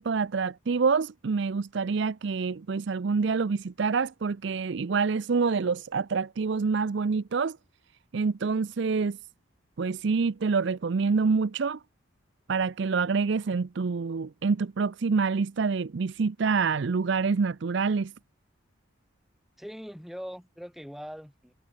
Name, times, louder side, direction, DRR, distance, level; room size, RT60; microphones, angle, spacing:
voice 1, 0.0-7.6 8.1-9.2 9.8-11.8 12.5-18.1, right 5 dB, 60° right, 0.5 m, -27 dB
voice 2, 19.6-21.5, equal, ahead, 4.3 m, -41 dB
head